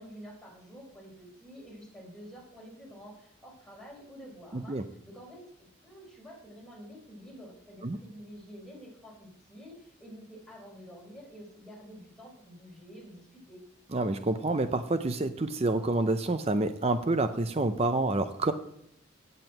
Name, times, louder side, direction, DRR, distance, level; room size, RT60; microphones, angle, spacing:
voice 1, 0.0-13.6, equal, ahead, -4 dB, 4.4 m, -49 dB
voice 2, 4.5-4.8 7.8-8.0 13.9-18.5, right 2 dB, 30° right, 10 dB, 0.5 m, -28 dB
9.0 x 7.8 x 7.7 m, 0.76 s
head